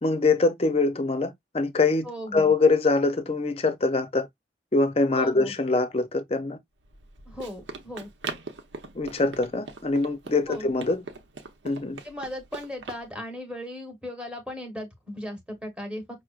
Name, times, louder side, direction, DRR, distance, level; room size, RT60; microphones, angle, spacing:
voice 1, 0.0-2.1 2.3-4.3 4.7-6.6 9.0-11.1 11.6-12.0, left 3 dB, 35° left, 0.5 m, -23 dB
voice 2, 2.0-2.5 5.1-5.6 7.3-8.1 10.5-10.7 12.0-16.0, left 1 dB, 5° right, 1.1 m, -37 dB
Run, 6.8-13.0, right 3 dB, 85° right, 0.8 m, -41 dB
5.8 x 2.1 x 2.4 m
head